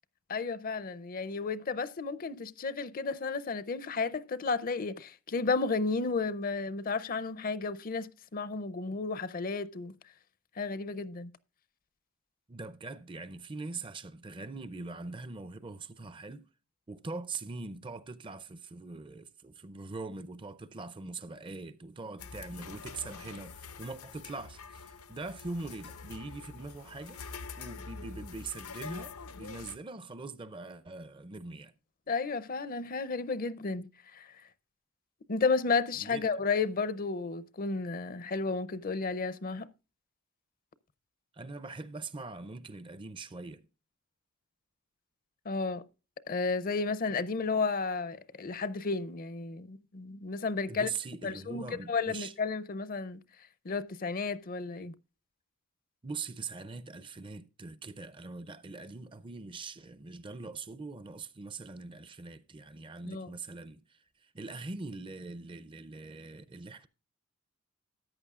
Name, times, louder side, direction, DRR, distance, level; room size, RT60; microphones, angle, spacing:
voice 1, 0.3-9.9 10.6-11.3 32.1-34.4 35.3-39.7 45.5-45.8 46.3-50.9 51.2-53.2 53.6-54.9 63.1-63.3, left 4 dB, 40° left, 0.5 m, -32 dB
voice 2, 12.5-16.4 16.9-27.2 27.5-31.7 36.0-36.3 41.3-43.7 50.7-52.3 56.0-66.9, right 3 dB, 20° right, 0.4 m, -42 dB
sound 1, 22.2-29.8, left 5 dB, 80° left, 0.7 m, -46 dB
14.0 x 9.5 x 2.4 m
head